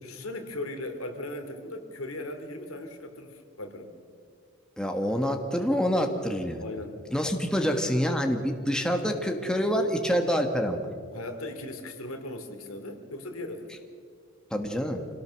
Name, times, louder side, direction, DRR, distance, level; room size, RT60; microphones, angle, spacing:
voice 1, 0.0-3.9 6.6-7.0 11.1-13.7, left 1 dB, 80° left, 6 dB, 2.7 m, -38 dB
voice 2, 4.8-6.6 7.1-10.8 14.5-15.0, equal, 5° left, 3 dB, 1.5 m, -26 dB
27.0 x 17.0 x 6.4 m, 2.2 s
head